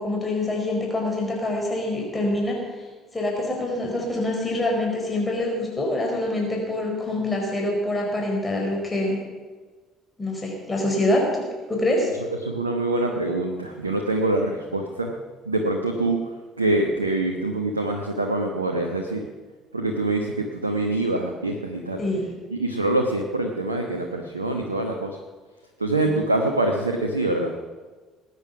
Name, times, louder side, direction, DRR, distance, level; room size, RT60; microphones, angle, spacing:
voice 1, 0.0-2.6 3.1-9.2 10.2-11.4 11.7-12.1 22.0-22.3, left 1 dB, 20° left, 0 dB, 4.8 m, -25 dB
voice 2, 12.4-15.1 15.4-19.3 19.7-22.0 22.5-25.2 25.8-27.5, right 2 dB, 85° right, 3 dB, 1.1 m, -25 dB
19.5 x 9.7 x 5.9 m, 1.3 s
figure-of-eight pair, 55°, 0 cm